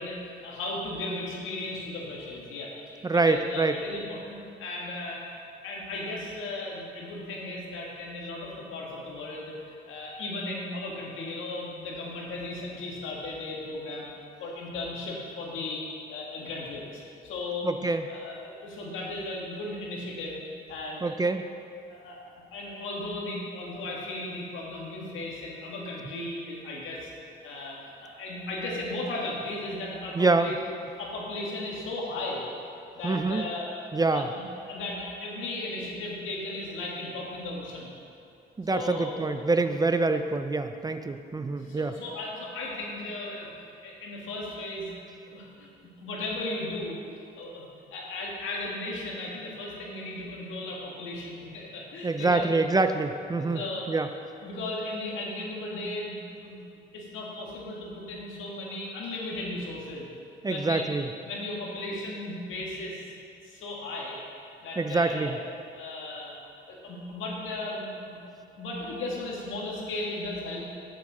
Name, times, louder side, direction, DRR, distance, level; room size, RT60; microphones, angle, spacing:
voice 1, 0.0-5.2 5.6-9.5 9.9-14.1 14.4-17.7 18.1-20.4 20.7-21.2 21.9-22.2 22.5-27.1 27.4-30.6 31.0-32.5 33.0-33.7 34.1-34.2 34.7-37.9 38.7-39.2 41.5-43.5 43.8-44.9 45.3-47.0 47.4-47.6 47.9-52.5 53.4-53.9 54.4-56.7 56.9-60.1 60.4-60.9 61.3-63.1 63.4-65.4 65.7-66.4 66.7-70.7, left 2 dB, 80° left, -3 dB, 2.0 m, -36 dB
voice 2, 3.0-3.7 17.6-18.1 21.0-21.4 30.1-30.5 33.0-33.4 33.9-34.3 38.6-41.9 52.0-53.6 53.9-54.1 60.4-61.1 64.8-65.4, right 3 dB, 20° right, 8 dB, 0.4 m, -25 dB
8.7 x 7.2 x 4.9 m, 2.5 s
cardioid pair, 90°, 20 cm